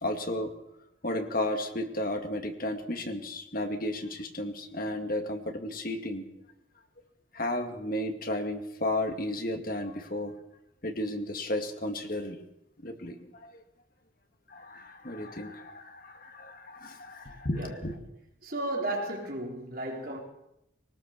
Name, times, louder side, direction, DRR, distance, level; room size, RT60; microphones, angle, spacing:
voice 1, 0.0-0.5 1.0-6.2 7.3-10.3 10.8-12.4 12.8-13.5 14.5-17.9, left 1 dB, 45° left, 2.4 m, -33 dB
voice 2, 18.4-20.2, right 1 dB, 50° right, 4.7 m, -34 dB
21.5 x 19.5 x 7.0 m
head